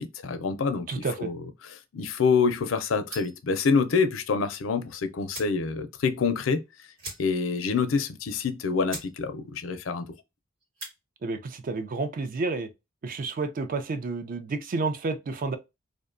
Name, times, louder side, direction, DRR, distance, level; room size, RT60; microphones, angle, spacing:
voice 1, 0.0-1.4 1.9-6.6 7.2-10.1, left 5 dB, 80° left, 0.5 m, -26 dB
voice 2, 0.9-1.3 11.2-12.7 13.0-15.6, right 3 dB, 45° right, 0.4 m, -30 dB
sound 1, 3.1-3.5 4.8-4.9 5.3-5.6 6.0-6.1 6.3-6.5 7.0-7.6 7.9-8.0 8.5-8.6 8.9-9.1 9.5-9.8 10.6-11.0, right 2 dB, 90° right, 1.4 m, -41 dB
2.6 x 2.1 x 2.4 m
head